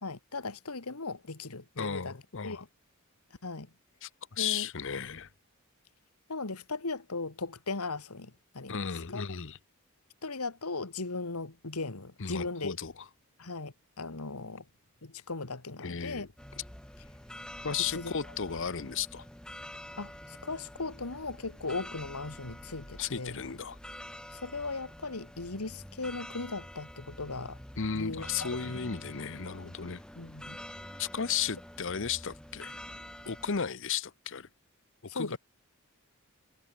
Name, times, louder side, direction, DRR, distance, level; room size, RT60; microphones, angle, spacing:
voice 1, 0.0-2.2 2.4-2.7 3.4-3.7 4.4-4.7 6.3-8.8 9.1-9.2 10.2-12.8 13.4-14.6 15.0-16.3 17.9-18.1 20.0-23.4 24.3-27.6 27.9-28.8 30.2-30.6 35.1-35.4, left 3 dB, 90° left, 2.0 m, -38 dB
voice 2, 1.8-2.6 4.0-5.3 8.7-9.6 12.2-13.1 15.8-16.3 17.6-19.3 23.0-23.8 27.8-30.0 31.0-32.8 33.3-34.5 35.0-35.4, left 7 dB, 60° left, 0.9 m, -34 dB
sound 1, 16.4-33.6, left 1 dB, 5° left, 0.6 m, -47 dB
head